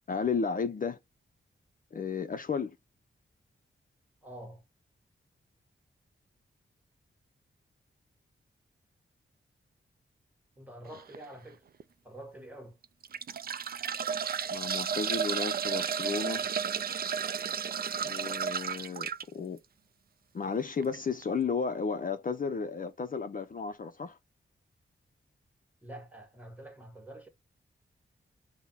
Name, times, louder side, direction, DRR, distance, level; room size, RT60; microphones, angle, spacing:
voice 1, 0.1-1.0 1.9-2.8 14.5-16.5 18.0-19.6 20.3-24.2, left 5 dB, 45° left, 0.5 m, -33 dB
voice 2, 4.2-4.6 10.6-11.6 12.0-12.8 25.8-27.3, right 1 dB, 5° right, 1.4 m, -47 dB
sound 1, 10.9-11.2 11.8-11.9 12.8-19.2 20.8-21.0 21.2-21.3, right 7 dB, 50° right, 0.4 m, -33 dB
5.4 x 2.1 x 4.4 m
cardioid pair, 65°, 21 cm